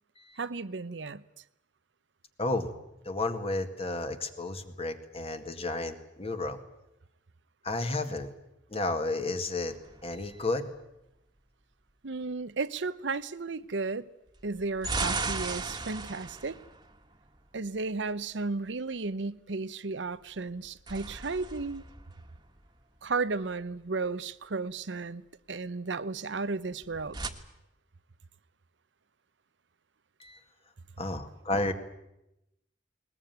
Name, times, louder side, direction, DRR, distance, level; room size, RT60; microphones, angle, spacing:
voice 1, 0.4-1.2 12.0-14.1 14.4-16.6 17.5-21.8 23.0-25.2 25.5-27.2, right 3 dB, 90° right, 0.8 m, -34 dB
voice 2, 2.4-2.7 3.1-6.6 7.6-8.3 8.7-9.8 10.0-10.7 30.2-30.4 31.0-31.7, left 2 dB, 35° left, 2.0 m, -32 dB
sound 1, 9.7-10.7 14.4-17.7 20.5-23.0 26.7-27.3, right 3 dB, 25° right, 1.6 m, -37 dB
21.0 x 20.5 x 9.3 m
head